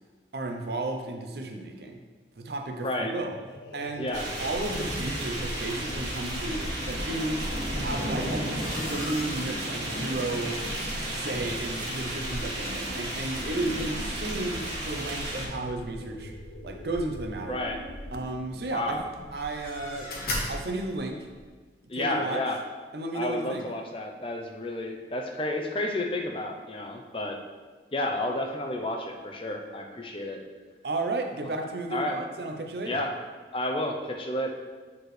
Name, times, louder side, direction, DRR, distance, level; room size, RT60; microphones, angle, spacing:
voice 1, 0.3-2.0 2.4-3.4 3.7-7.5 7.8-10.6 11.1-16.3 16.6-17.6 18.1-20.2 20.5-21.3 21.9-22.4 22.9-23.7 30.8-33.0, right 2 dB, 65° right, 4 dB, 0.7 m, -33 dB
voice 2, 2.8-3.1 4.0-4.2 17.5-17.8 18.7-19.0 21.9-22.6 23.1-27.4 27.9-30.4 31.9-32.2 32.8-33.1 33.5-34.5, left 1 dB, 30° left, 2 dB, 0.6 m, -31 dB
sound 1, 2.9-20.4, left 1 dB, 75° left, 0.6 m, -44 dB
sound 2, 4.1-15.5, right 1 dB, 85° right, 1.6 m, -33 dB
sound 3, 7.8-21.5, left 1 dB, 55° left, 1.2 m, -42 dB
8.2 x 4.7 x 3.3 m, 1.4 s
head